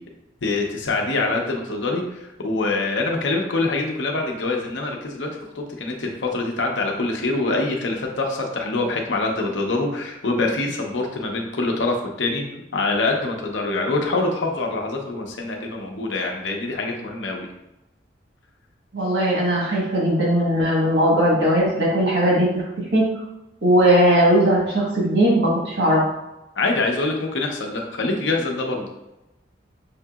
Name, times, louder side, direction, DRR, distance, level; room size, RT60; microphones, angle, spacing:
voice 1, 0.4-5.3 5.6-12.4 12.7-17.5 26.6-28.9, left 3 dB, 90° left, 1 dB, 0.7 m, -25 dB
voice 2, 18.9-22.6 22.9-23.1 23.6-26.0, right 1 dB, 70° right, -4 dB, 1.2 m, -18 dB
5.8 x 2.8 x 2.3 m, 0.93 s
head